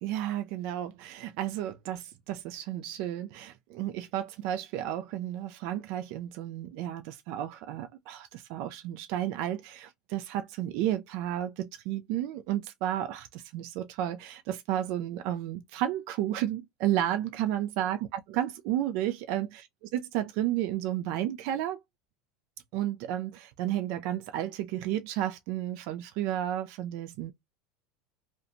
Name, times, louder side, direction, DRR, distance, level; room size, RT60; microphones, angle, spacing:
voice 1, 0.0-18.1 18.3-19.7 19.9-21.8 22.7-27.3, right 12 dB, 60° right, 0.3 m, -32 dB
2.5 x 2.2 x 2.7 m
supercardioid pair, 130°, 0 cm